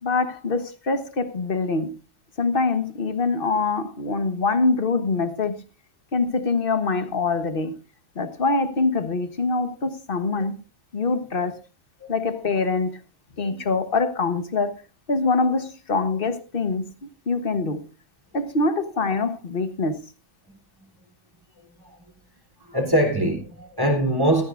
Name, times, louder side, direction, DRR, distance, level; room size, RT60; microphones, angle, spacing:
voice 1, 0.0-1.9 2.4-5.6 6.1-7.7 8.1-10.6 10.9-11.6 12.1-13.0 13.4-14.8 15.1-17.8 18.3-20.1, left 3 dB, 45° left, 1.4 m, -24 dB
voice 2, 22.6-24.5, right 1 dB, 15° right, 3.4 m, -23 dB
16.5 x 14.0 x 2.5 m
omnidirectional pair, 1.4 m